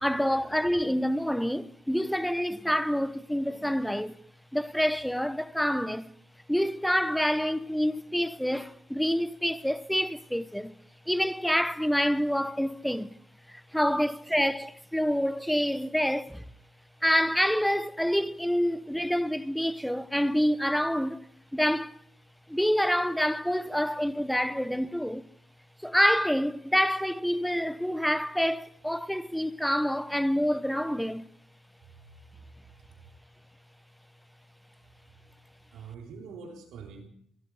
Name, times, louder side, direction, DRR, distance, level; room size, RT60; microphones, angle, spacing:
voice 1, 0.0-4.2 4.5-6.1 6.5-10.7 11.1-13.1 13.5-16.4 17.0-22.0 22.5-25.2 25.8-31.3, equal, ahead, 0.7 m, -27 dB
voice 2, 35.7-37.1, right 5 dB, 85° right, 3.4 m, -45 dB
16.5 x 12.5 x 4.7 m
cardioid pair, 90°, 0 cm